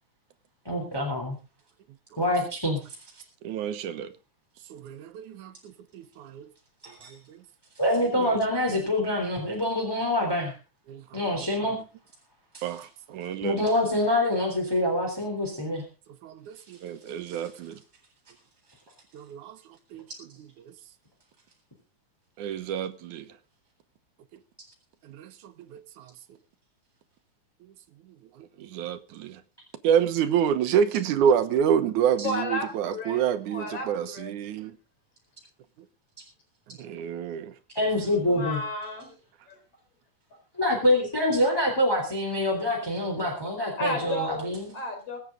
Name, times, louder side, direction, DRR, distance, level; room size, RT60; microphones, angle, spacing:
voice 1, 0.6-1.4 2.2-3.0 6.8-7.1 7.7-10.6 11.1-11.8 12.5-12.7 13.4-15.8 17.3-17.5 32.2-32.3 37.7-38.6 40.6-44.7, left 1 dB, 5° left, 3.3 m, -26 dB
voice 2, 3.4-4.1 4.7-6.5 6.9-7.4 8.2-8.4 10.9-11.2 12.6-13.7 16.2-17.8 19.1-19.6 19.9-20.0 20.7-20.8 22.4-23.3 25.0-26.1 28.4-29.4 29.8-34.7 36.8-37.5, right 8 dB, 85° right, 2.5 m, -28 dB
voice 3, 32.2-34.3 38.3-39.2 39.5-39.6 43.8-45.2, left 1 dB, 50° left, 4.7 m, -33 dB
24.0 x 8.3 x 3.9 m
omnidirectional pair, 3.5 m